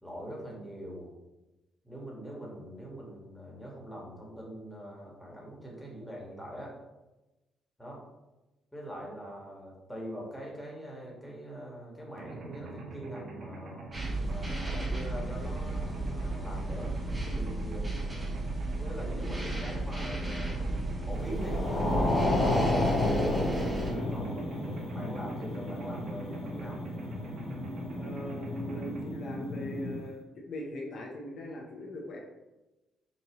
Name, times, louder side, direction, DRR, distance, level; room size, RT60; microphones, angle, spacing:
voice 1, 0.0-1.1 1.8-6.8 7.8-8.0 8.7-13.9 14.3-16.9 17.3-17.9 18.8-20.7 21.1-23.6 24.1-26.8, equal, 5° left, -3 dB, 1.5 m, -43 dB
Mechanisms, 12.2-29.0, right 2 dB, 60° right, 0.7 m, -44 dB
sound 1, 13.9-23.9, right 2 dB, 15° right, 1.1 m, -34 dB
sound 2, 21.3-30.0, left 1 dB, 90° left, 1.3 m, -31 dB
voice 2, 27.9-32.2, equal, 60° left, -1 dB, 0.7 m, -41 dB
5.5 x 2.6 x 3.0 m, 1.1 s
cardioid pair, 90°, 0 cm